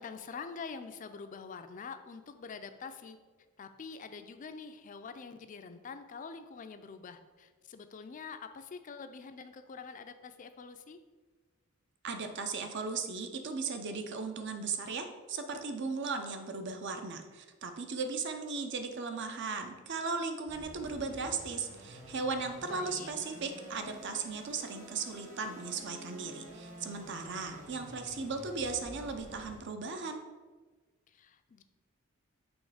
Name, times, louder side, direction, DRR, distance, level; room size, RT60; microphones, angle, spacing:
voice 1, 0.0-3.2 3.6-11.0 22.7-23.1 31.1-31.6, left 5 dB, 40° left, 9 dB, 0.4 m, -45 dB
voice 2, 12.0-30.2, right 4 dB, 55° right, 6 dB, 0.6 m, -37 dB
sound 1, 20.5-29.6, equal, 35° right, 1.1 m, -50 dB
6.2 x 3.1 x 4.9 m, 1.3 s
head